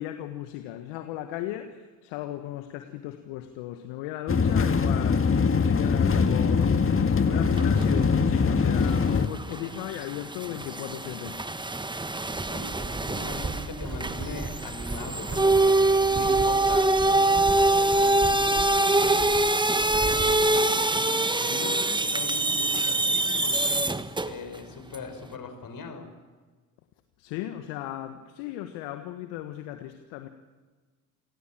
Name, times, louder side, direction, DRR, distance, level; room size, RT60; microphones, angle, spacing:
voice 1, 0.0-11.4 27.2-30.3, left 13 dB, 75° left, 7 dB, 1.5 m, -36 dB
sound 1, 4.3-9.3, left 5 dB, 30° left, 1.9 m, -22 dB
sound 2, 7.5-8.0 8.4-24.6 24.9-25.0, right 2 dB, 10° right, 1.3 m, -24 dB
sound 3, 12.3-20.4, right 3 dB, 25° right, 7.1 m, -37 dB
voice 2, 12.5-19.6 20.0-23.9 24.2-26.1, left 4 dB, 50° left, 7 dB, 5.9 m, -41 dB
28.0 x 18.5 x 7.5 m, 1.3 s
hypercardioid pair, 55°, 44 cm